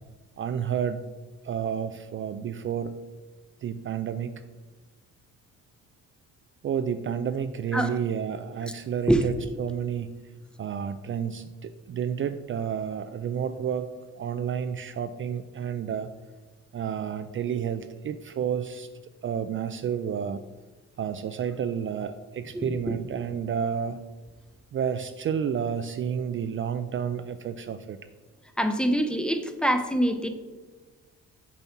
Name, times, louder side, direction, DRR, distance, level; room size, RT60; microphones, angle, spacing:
voice 1, 0.4-1.0 1.4-3.0 3.6-4.4 6.6-10.2 10.6-13.9 14.2-16.1 16.7-18.9 19.2-20.4 21.0-24.0 24.7-28.0, right 8 dB, 45° right, 10 dB, 0.4 m, -30 dB
voice 2, 22.5-23.0 28.6-30.3, equal, 5° left, 7 dB, 0.7 m, -25 dB
7.1 x 4.2 x 5.7 m, 1.3 s
cardioid pair, 90°, 30 cm